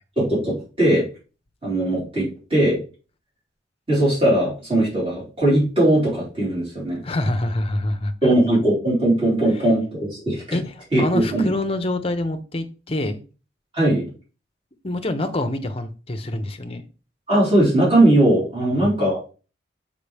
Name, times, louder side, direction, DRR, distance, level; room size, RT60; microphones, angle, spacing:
voice 1, 0.2-1.0 1.6-2.8 3.9-7.0 8.2-10.6 10.9-11.5 13.7-14.1 17.3-19.2, right 1 dB, 30° right, -7 dB, 3.9 m, -19 dB
voice 2, 7.0-8.3 10.5-13.2 14.8-16.8 18.8-18.9, left 1 dB, 30° left, 8 dB, 0.8 m, -26 dB
6.7 x 5.2 x 3.4 m, 0.35 s
head